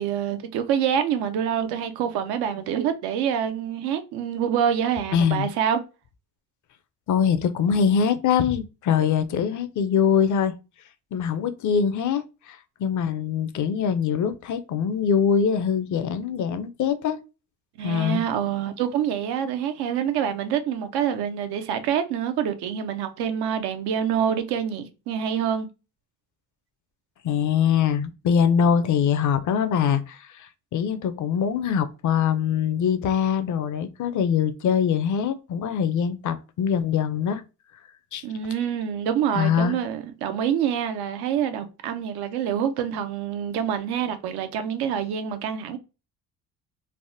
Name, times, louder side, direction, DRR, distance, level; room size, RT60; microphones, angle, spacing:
voice 1, 0.0-5.8 17.8-25.7 38.2-45.8, right 8 dB, 85° right, 0.6 m, -26 dB
voice 2, 5.1-5.5 7.1-10.5 11.1-17.2 17.8-18.2 27.2-37.4 38.1-38.2 39.3-39.7, left 7 dB, 55° left, 0.5 m, -23 dB
3.4 x 2.0 x 2.6 m
cardioid pair, 80°, 37 cm